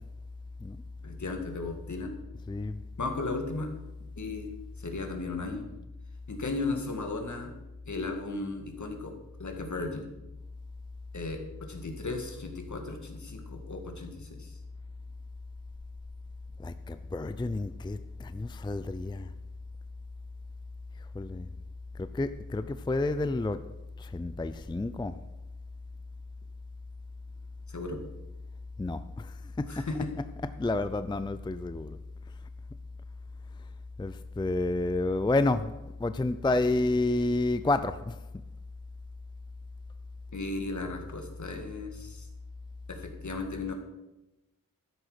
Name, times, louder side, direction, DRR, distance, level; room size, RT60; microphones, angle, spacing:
voice 1, 1.0-2.1 3.0-3.7 4.2-4.5 4.8-5.7 6.3-7.5 7.9-9.1 9.4-10.1 11.1-14.6 27.7-28.0 29.7-30.1 40.3-42.3 42.9-43.7, left 3 dB, 60° left, 2.1 m, -35 dB
voice 2, 2.5-2.8 16.6-19.3 21.1-21.5 22.0-23.6 24.0-25.1 28.8-29.9 30.6-32.0 34.0-35.7 36.0-38.2, left 2 dB, 15° left, 0.4 m, -30 dB
12.5 x 10.5 x 5.0 m
wide cardioid pair, 105°, 33 cm